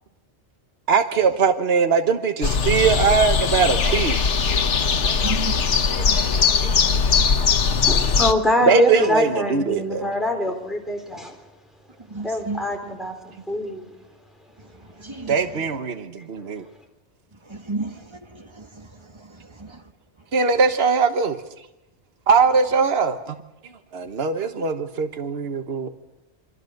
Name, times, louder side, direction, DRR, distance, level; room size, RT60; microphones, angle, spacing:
voice 1, 0.9-4.5 5.0-5.4 5.9-8.1 8.6-10.1 15.3-16.7 20.3-21.4 22.3-23.4 23.9-25.9, right 5 dB, 60° right, 1.5 m, -22 dB
sound 1, 2.4-8.3, left 5 dB, 80° left, 1.4 m, -20 dB
voice 2, 5.2-5.5 6.1-6.2 12.1-12.7 15.0-15.3 17.5-19.8, right 3 dB, 25° right, 1.6 m, -33 dB
voice 3, 7.9-11.4 12.2-13.9, left 1 dB, ahead, 3.8 m, -24 dB
28.0 x 25.0 x 6.6 m
omnidirectional pair, 1.2 m